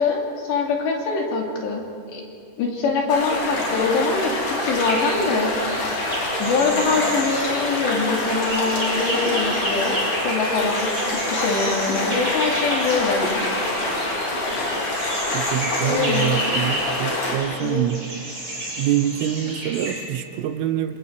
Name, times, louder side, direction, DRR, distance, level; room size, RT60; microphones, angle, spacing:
voice 1, 0.0-1.8 2.1-2.2 2.6-5.5 6.4-13.5 15.8-16.3 17.6-17.8, left 4 dB, 65° left, -1 dB, 4.9 m, -24 dB
sound 1, 3.1-17.3, left 2 dB, 45° left, 5.6 m, -26 dB
sound 2, 4.8-20.0, right 1 dB, 20° right, 6.7 m, -31 dB
voice 2, 15.3-18.0 18.8-21.0, right 11 dB, 90° right, 9 dB, 3.7 m, -25 dB
28.0 x 27.5 x 4.7 m, 2.4 s
omnidirectional pair, 5.6 m